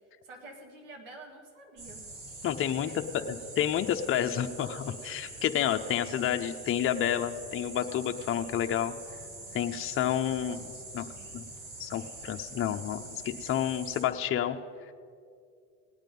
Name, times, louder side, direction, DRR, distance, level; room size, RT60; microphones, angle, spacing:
voice 1, 0.2-2.0 2.7-3.3 10.3-10.5 11.1-11.3, right 2 dB, 90° right, 2 dB, 2.1 m, -49 dB
sound 1, 1.8-14.0, right 2 dB, 60° right, 3.9 m, -45 dB
voice 2, 2.4-2.9 3.2-8.9 9.5-10.7 10.9-11.1 11.3-11.4 11.8-14.6, left 10 dB, 35° left, 5 dB, 0.7 m, -30 dB
18.5 x 8.9 x 5.3 m, 2.3 s
supercardioid pair, 90°, 36 cm